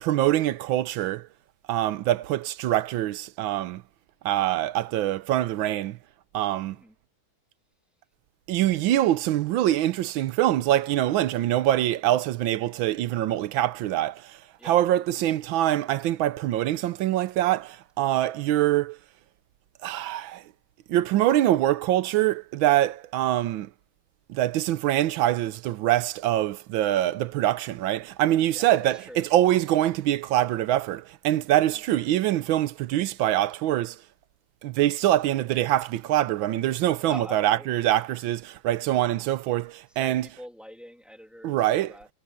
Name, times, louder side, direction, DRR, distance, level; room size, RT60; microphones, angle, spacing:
voice 1, 0.0-1.3 1.7-3.8 4.2-6.0 6.3-6.8 8.5-14.4 14.6-19.0 19.8-20.4 20.9-23.7 24.3-34.0 34.6-40.3 41.4-42.0, right 13 dB, 80° right, 1.4 m, -24 dB
voice 2, 28.5-29.3 37.1-37.8 39.9-42.1, equal, ahead, 3.0 m, -44 dB
omnidirectional pair, 2.2 m